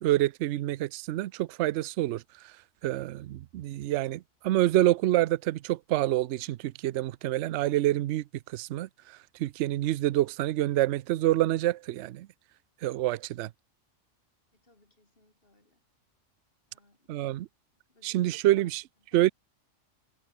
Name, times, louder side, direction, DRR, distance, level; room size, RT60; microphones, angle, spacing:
voice 1, 0.0-2.2 2.8-8.2 8.5-8.9 9.4-12.3 12.8-13.5 17.1-17.5 18.0-18.8 19.1-19.3, right 15 dB, 70° right, 0.8 m, -27 dB
voice 2, 14.5-15.8 16.7-17.1 17.9-18.4 19.0-19.2, left 2 dB, 45° left, 4.4 m, -65 dB
omnidirectional pair, 1.3 m